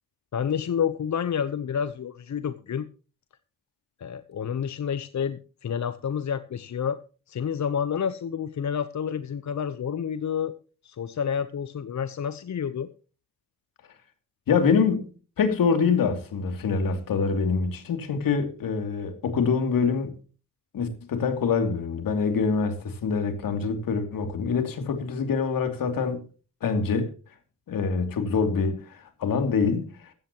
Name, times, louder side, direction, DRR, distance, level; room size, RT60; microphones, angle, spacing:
voice 1, 0.3-2.9 4.0-7.0 7.3-10.5 10.8-12.9, left 7 dB, 55° left, 0.9 m, -29 dB
voice 2, 14.5-15.1 15.4-20.1 20.7-26.2 26.6-27.1 27.7-29.9, left 5 dB, 75° left, 2.8 m, -25 dB
16.0 x 13.5 x 3.0 m
supercardioid pair, 55°, 34 cm